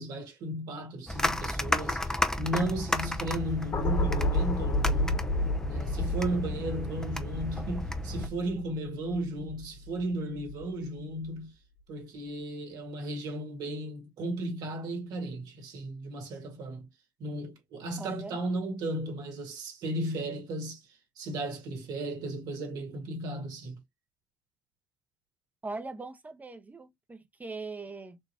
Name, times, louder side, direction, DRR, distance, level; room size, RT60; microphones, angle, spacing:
voice 1, 0.0-5.2 5.6-11.5 11.9-16.8 17.2-20.8 21.2-23.8, right 1 dB, 75° right, 2.2 m, -35 dB
sound 1, 1.1-8.3, left 1 dB, 10° left, 1.0 m, -33 dB
sound 2, 3.7-10.0 10.4-10.7, left 1 dB, 50° left, 2.3 m, -31 dB
voice 2, 18.0-18.4 25.6-28.2, right 3 dB, 25° right, 1.2 m, -40 dB
4.6 x 3.0 x 2.9 m
supercardioid pair, 65°, 7 cm